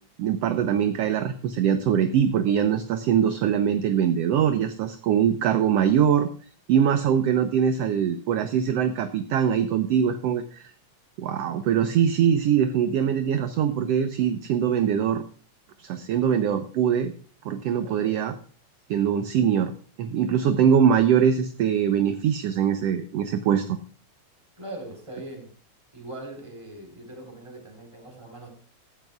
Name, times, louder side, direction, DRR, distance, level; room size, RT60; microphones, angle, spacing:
voice 1, 0.2-6.3 6.7-10.7 11.2-15.2 15.8-17.1 17.4-18.3 18.9-19.7 20.0-23.8, right 8 dB, 70° right, 9 dB, 1.7 m, -22 dB
voice 2, 17.7-18.2 24.6-25.5 25.9-28.5, right 1 dB, 10° right, 2 dB, 4.2 m, -41 dB
16.5 x 13.5 x 2.4 m, 0.43 s
omnidirectional pair, 3.4 m